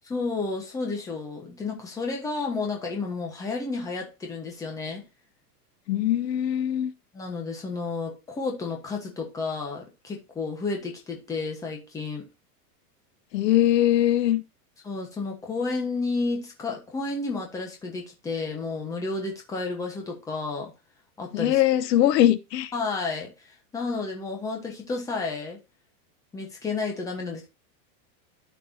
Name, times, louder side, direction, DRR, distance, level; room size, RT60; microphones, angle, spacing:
voice 1, 0.0-5.0 7.1-12.2 14.8-20.7 21.2-21.6 22.7-23.3 23.7-25.6 26.3-27.5, left 3 dB, 5° left, 1.2 m, -31 dB
voice 2, 5.9-6.9 13.3-14.4 21.3-22.7, left 12 dB, 85° left, 1.0 m, -21 dB
13.0 x 4.7 x 2.7 m
supercardioid pair, 180°, 48 cm